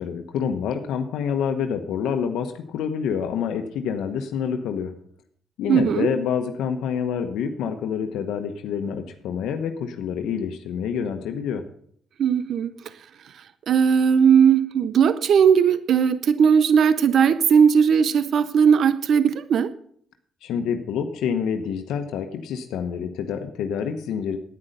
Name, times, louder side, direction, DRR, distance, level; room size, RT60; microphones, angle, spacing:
voice 1, 0.0-4.9 5.6-11.6 20.4-24.4, left 7 dB, 85° left, 1.0 m, -27 dB
voice 2, 5.7-6.1 12.2-12.7 13.3-19.7, right 7 dB, 65° right, 0.6 m, -18 dB
9.8 x 9.6 x 6.6 m
cardioid pair, 90°, 0 cm